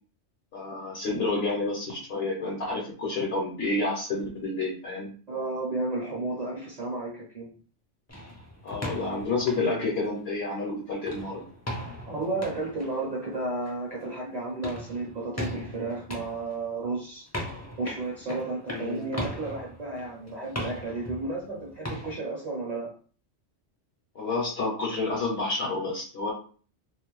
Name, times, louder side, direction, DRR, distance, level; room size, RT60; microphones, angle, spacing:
voice 1, 0.5-5.1 8.6-11.4 18.7-19.0 24.1-26.3, left 3 dB, 60° left, -3 dB, 0.9 m, -29 dB
voice 2, 5.3-7.5 12.1-17.3 17.8-22.9, right 2 dB, 40° right, -4 dB, 0.7 m, -33 dB
sound 1, 8.1-10.6 11.0-22.1, left 1 dB, 20° left, 0.5 m, -39 dB
2.4 x 2.1 x 3.0 m, 0.41 s
omnidirectional pair, 1.2 m